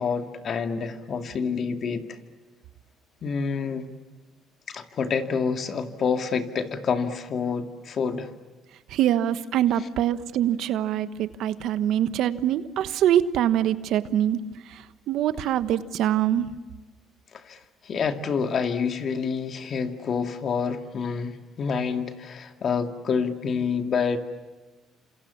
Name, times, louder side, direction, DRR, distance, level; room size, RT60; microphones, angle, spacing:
voice 1, 0.0-2.0 3.2-3.9 4.7-8.3 17.3-24.2, left 6 dB, 50° left, 2.4 m, -28 dB
voice 2, 8.9-14.4 15.1-16.5, right 11 dB, 70° right, 1.2 m, -24 dB
29.5 x 27.0 x 7.2 m
cardioid pair, 95°, 0 cm